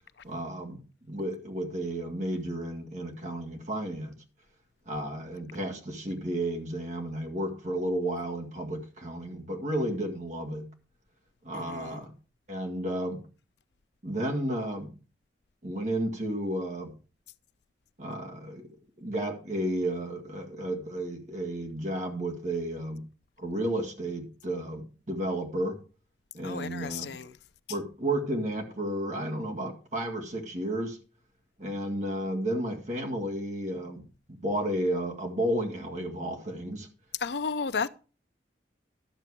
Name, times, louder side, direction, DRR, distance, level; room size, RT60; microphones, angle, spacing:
voice 1, 0.2-4.2 4.9-10.7 11.4-12.1 12.5-13.2 14.0-14.9 15.6-16.9 18.0-18.7 19.0-23.1 23.4-25.8 26.3-27.2 27.7-31.0 31.6-34.0 34.3-36.9, right 1 dB, 40° right, 1.9 m, -32 dB
voice 2, 11.5-12.0 26.4-27.3 37.2-37.9, left 5 dB, 75° left, 0.6 m, -33 dB
12.0 x 6.8 x 4.8 m
head